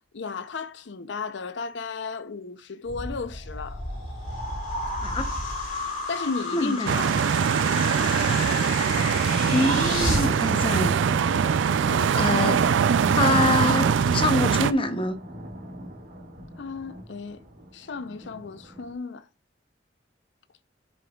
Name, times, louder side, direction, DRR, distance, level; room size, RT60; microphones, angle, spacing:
voice 1, 0.1-3.8 6.1-7.4 11.9-12.2 16.6-17.4 17.7-19.2, left 4 dB, 65° left, 0.6 m, -34 dB
sound 1, 2.9-10.3, left 2 dB, 45° left, 4.0 m, -31 dB
voice 2, 6.5-6.9 9.5-11.0 12.1-12.6 13.1-15.2, left 2 dB, 30° left, 0.8 m, -25 dB
sound 2, 6.9-14.7, right 7 dB, 75° right, 0.4 m, -22 dB
Thunder, 7.6-18.9, right 1 dB, 55° right, 1.8 m, -42 dB
11.5 x 5.3 x 2.3 m
head